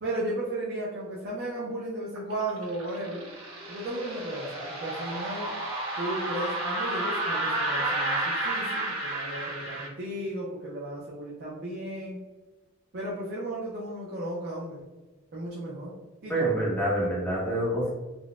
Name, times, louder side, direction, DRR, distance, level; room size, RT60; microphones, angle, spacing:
voice 1, 0.0-3.2 3.7-5.6 6.0-12.2 12.9-14.8 15.3-16.5, right 1 dB, 50° right, -6 dB, 0.6 m, -35 dB
sound 1, 2.2-9.9, right 2 dB, 80° right, 1.1 m, -31 dB
voice 2, 16.3-17.9, right 1 dB, 10° left, -7 dB, 1.0 m, -26 dB
3.9 x 2.2 x 2.3 m, 1.2 s
head